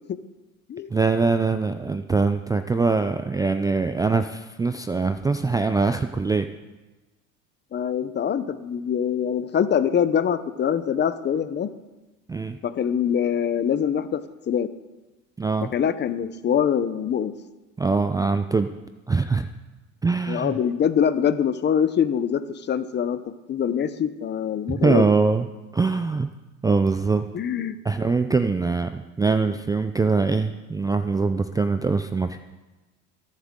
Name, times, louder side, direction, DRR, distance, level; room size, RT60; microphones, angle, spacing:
voice 1, 0.9-6.5 12.3-12.6 15.4-15.7 17.8-18.7 19.1-19.5 20.0-20.6 24.7-25.5 25.7-26.3 26.6-27.3 27.8-28.9 29.2-32.4, right 4 dB, 10° right, 9 dB, 0.3 m, -23 dB
voice 2, 7.7-11.7 12.6-14.2 14.5-14.7 15.7-17.3 20.3-23.2 23.5-25.1 27.3-27.8, left 8 dB, 30° left, 13 dB, 0.7 m, -24 dB
22.5 x 7.5 x 3.7 m, 1.1 s
supercardioid pair, 110°, 34 cm